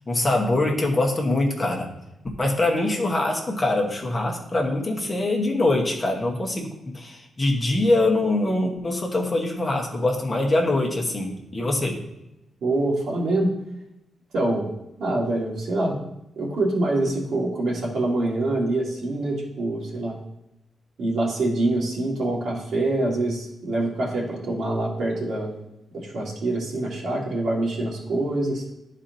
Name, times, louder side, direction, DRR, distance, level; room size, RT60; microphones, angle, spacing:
voice 1, 0.1-1.9 2.4-12.0, left 2 dB, 20° left, 0 dB, 1.1 m, -23 dB
voice 2, 12.6-13.5 14.3-14.7 15.0-16.0 16.4-20.2 21.0-25.6 25.9-28.6, right 2 dB, 65° right, -3 dB, 1.8 m, -25 dB
12.0 x 4.2 x 2.7 m, 0.88 s
wide cardioid pair, 165°, 0 cm